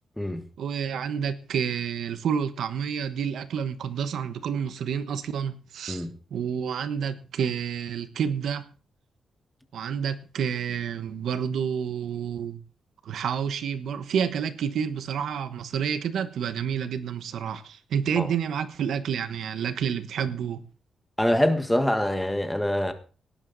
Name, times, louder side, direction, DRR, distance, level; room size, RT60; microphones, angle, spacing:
voice 1, 0.6-6.1 6.3-8.6 9.7-12.6 13.0-20.6, right 7 dB, 80° right, 1.1 m, -29 dB
voice 2, 21.2-22.9, left 1 dB, 5° left, 1.5 m, -24 dB
18.0 x 11.0 x 4.0 m
wide cardioid pair, 160°, 0 cm